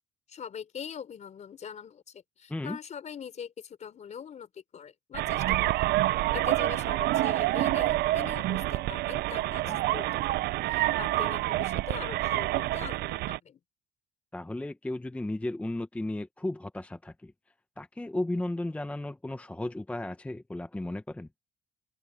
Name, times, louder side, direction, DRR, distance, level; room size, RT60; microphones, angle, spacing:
voice 1, 0.3-5.9 6.3-13.6, left 7 dB, 45° left, 4.2 m, -42 dB
sound 1, 5.1-13.4, right 16 dB, 75° right, 0.5 m, -27 dB
voice 2, 14.3-17.3 17.8-21.3, left 1 dB, 10° left, 0.7 m, -34 dB
cardioid pair, 110°, 17 cm